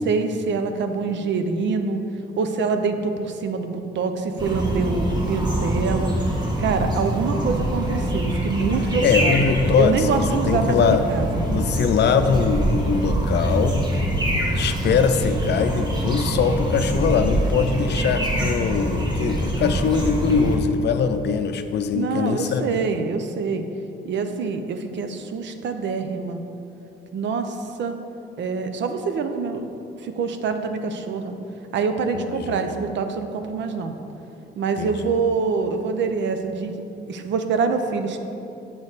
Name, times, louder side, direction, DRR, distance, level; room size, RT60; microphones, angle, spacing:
voice 1, 0.1-2.0 2.4-6.2 6.6-9.4 9.8-11.5 21.9-23.6 24.0-26.4 27.1-28.0 28.4-29.7 30.0-31.4 31.7-34.0 34.6-36.7 37.1-38.2, right 4 dB, 65° right, 7 dB, 0.6 m, -25 dB
sound 1, 4.4-20.6, right 1 dB, 20° right, 1.2 m, -24 dB
voice 2, 9.0-11.0 11.5-13.8 14.5-22.8 32.1-32.6 34.8-34.9, left 6 dB, 60° left, 8 dB, 0.5 m, -22 dB
7.0 x 5.2 x 4.0 m, 2.8 s
cardioid pair, 90°, 20 cm